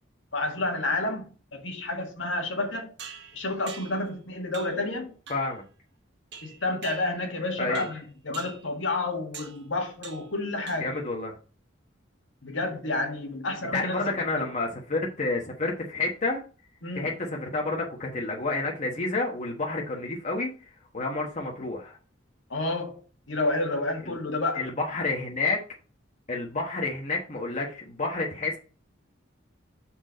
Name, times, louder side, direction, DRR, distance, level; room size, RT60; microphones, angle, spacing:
voice 1, 0.3-2.9 3.3-5.1 6.4-10.9 12.4-14.4 16.8-17.1 22.5-24.7, left 2 dB, 70° left, 1.7 m, -30 dB
sound 1, 3.0-4.1 4.5-4.9 5.3-5.6 6.3-7.4 7.7-8.0 8.3-8.7 9.3-9.6 10.0-10.4 10.7-11.1, right 6 dB, 60° right, 1.1 m, -44 dB
voice 2, 5.3-5.6 7.6-7.9 10.8-11.3 13.7-16.4 16.9-20.5 20.9-22.0 24.5-25.6 26.3-28.6, left 3 dB, 40° left, 1.2 m, -29 dB
5.9 x 4.5 x 5.1 m
head